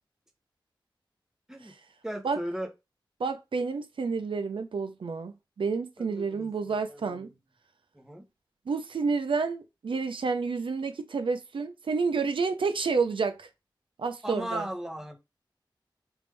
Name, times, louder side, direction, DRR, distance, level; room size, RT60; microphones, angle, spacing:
voice 1, 2.0-2.7 6.0-7.3 7.9-8.3 14.2-15.2, equal, 5° right, 0.9 m, -37 dB
voice 2, 3.2-7.3 8.7-13.5 14.0-14.7, right 4 dB, 80° right, 0.4 m, -29 dB
3.4 x 2.6 x 3.2 m
wide cardioid pair, 65°, 9 cm